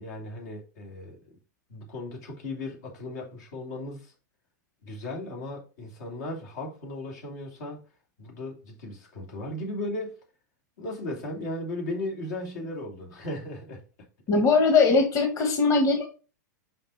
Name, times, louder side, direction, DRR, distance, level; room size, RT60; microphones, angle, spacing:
voice 1, 0.0-1.4 1.7-4.1 4.8-7.8 8.2-10.2 10.8-13.8, left 1 dB, 70° left, 3.0 m, -36 dB
voice 2, 14.3-16.1, left 4 dB, 35° left, 1.6 m, -21 dB
5.8 x 5.1 x 4.2 m
hypercardioid pair, 120°, 10 cm